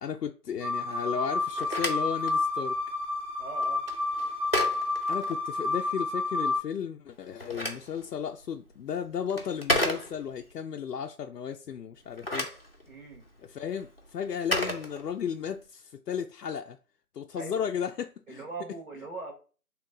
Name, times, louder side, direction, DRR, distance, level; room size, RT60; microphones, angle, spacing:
voice 1, 0.0-2.8 5.1-12.5 13.4-16.8 17.1-18.4, left 8 dB, 85° left, 0.5 m, -34 dB
sound 1, 0.6-6.6, left 3 dB, 85° right, 1.9 m, -30 dB
Telephone, 1.4-5.9 7.1-10.5 12.0-15.5, left 1 dB, 40° left, 0.6 m, -34 dB
voice 2, 3.4-3.8 12.9-13.2 17.3-17.7 18.3-19.3, right 3 dB, 60° right, 1.7 m, -40 dB
3.1 x 3.1 x 3.7 m
figure-of-eight pair, 175°, 47 cm